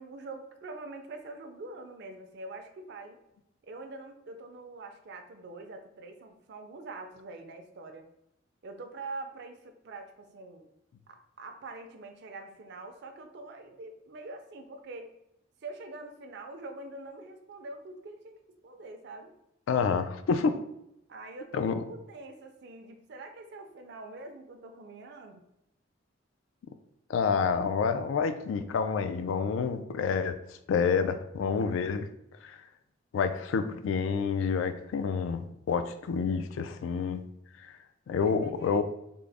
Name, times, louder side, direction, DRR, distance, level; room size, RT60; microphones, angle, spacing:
voice 1, 0.0-3.2 3.6-8.1 8.6-10.7 11.1-15.1 15.6-18.4 18.6-19.3 21.1-25.4 38.2-38.8, right 2 dB, 60° right, 5 dB, 0.5 m, -44 dB
voice 2, 19.7-20.6 21.5-21.8 27.1-30.4 30.7-32.1 32.4-32.6 33.1-37.2 37.6-37.8 38.1-38.8, left 5 dB, 85° left, 9 dB, 0.3 m, -28 dB
3.6 x 2.0 x 3.3 m, 0.81 s
head